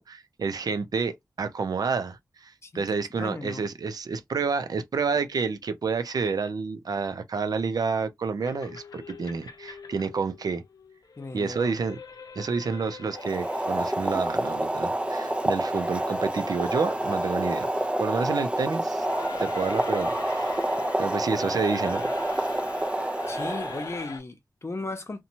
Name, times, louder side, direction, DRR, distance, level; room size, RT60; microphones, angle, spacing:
voice 1, 0.0-10.6 11.3-12.0 12.4-17.7 18.0-19.1 19.4-20.7 21.0-22.1, right 5 dB, 80° right, 0.5 m, -29 dB
voice 2, 2.6-3.7 11.2-11.8 23.3-25.2, left 2 dB, 45° left, 0.8 m, -36 dB
sound 1, 8.4-24.2, left 5 dB, 80° left, 0.5 m, -44 dB
Boiling, 13.1-24.1, right 1 dB, 15° right, 0.4 m, -28 dB
2.9 x 2.2 x 2.7 m
wide cardioid pair, 85°, 6 cm